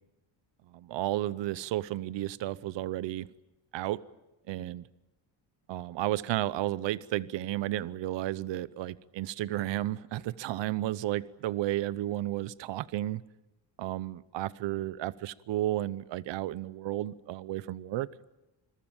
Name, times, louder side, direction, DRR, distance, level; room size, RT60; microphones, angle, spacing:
voice 1, 0.7-3.3 3.7-4.0 4.5-4.8 5.7-13.2 13.8-18.1, right 14 dB, 80° right, 17 dB, 0.8 m, -32 dB
26.5 x 22.5 x 8.9 m, 0.98 s
cardioid pair, 140°, 43 cm